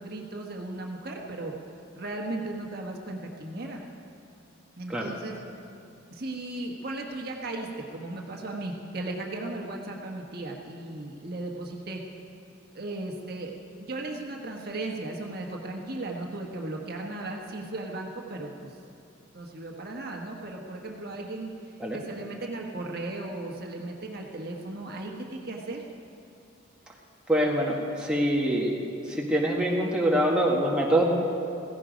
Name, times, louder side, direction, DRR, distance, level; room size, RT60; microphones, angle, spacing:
voice 1, 0.0-1.5 2.0-3.8 4.8-5.4 6.1-12.0 12.7-13.5 13.8-18.8 19.3-25.8, right 2 dB, 50° right, 0 dB, 1.4 m, -36 dB
voice 2, 27.3-28.7 29.0-31.0, right 1 dB, 5° right, -3 dB, 1.6 m, -24 dB
16.0 x 15.5 x 5.2 m, 2.7 s
head